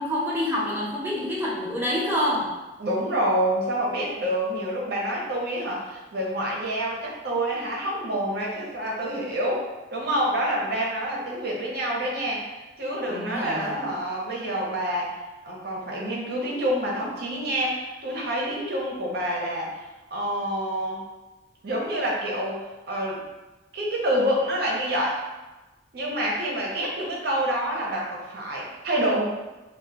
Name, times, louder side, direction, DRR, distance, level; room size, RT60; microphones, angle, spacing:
voice 1, 0.0-2.5 13.1-13.9, left 1 dB, 10° right, -7 dB, 0.6 m, -27 dB
voice 2, 2.8-12.5 12.8-15.1 15.4-19.7 20.1-21.0 21.6-23.3 23.7-25.2 25.9-29.2, right 1 dB, 55° right, -3 dB, 0.7 m, -27 dB
2.2 x 2.2 x 3.8 m, 1.1 s
head